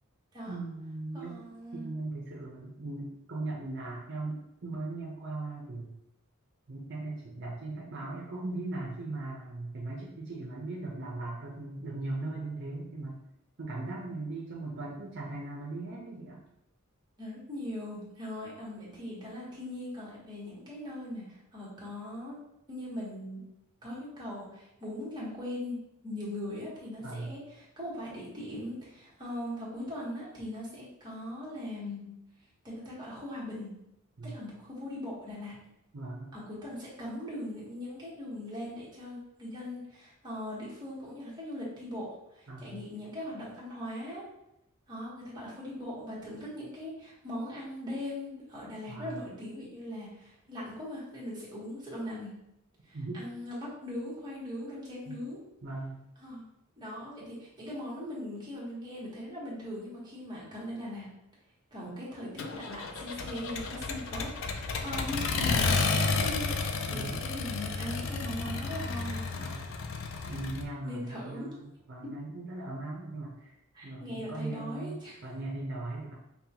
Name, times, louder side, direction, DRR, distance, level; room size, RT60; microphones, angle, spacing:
voice 1, 0.5-1.4 1.7-5.9 6.7-13.2 13.6-16.4 27.0-27.3 34.2-34.4 35.9-36.3 42.5-42.8 48.9-49.2 52.9-53.3 55.1-55.2 55.6-56.0 66.9-67.2 69.4-69.7 70.3-73.6 73.8-76.1, right 2 dB, 55° right, -4 dB, 0.6 m, -39 dB
voice 2, 1.1-2.0 17.2-22.4 22.7-23.4 23.8-32.1 32.6-33.7 34.2-35.5 36.3-44.2 44.9-52.3 52.8-55.4 56.2-56.4 56.8-61.1 61.7-66.6 66.9-69.2 70.8-71.5 72.0-72.2 73.7-75.2, left 1 dB, 20° right, -7 dB, 1.3 m, -40 dB
Accelerating revving vroom, 62.4-70.6, left 4 dB, 65° left, 0.4 m, -32 dB
5.3 x 2.3 x 2.8 m, 0.83 s
head